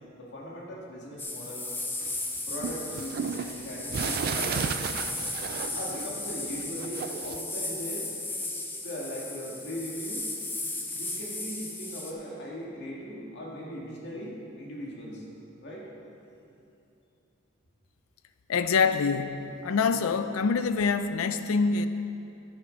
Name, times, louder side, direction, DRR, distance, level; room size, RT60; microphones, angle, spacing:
voice 1, 0.1-1.7 2.5-5.0 5.7-8.1 8.8-10.3 10.9-15.2 15.6-15.9, equal, 55° left, -3 dB, 2.0 m, -39 dB
sound 1, 1.2-12.1, left 2 dB, 10° left, 0.8 m, -35 dB
sound 2, 2.0-6.3 6.6-7.4, right 6 dB, 50° right, 0.3 m, -33 dB
voice 2, 18.5-21.9, left 5 dB, 85° left, 10 dB, 0.4 m, -25 dB
10.5 x 9.5 x 5.2 m, 2.7 s
head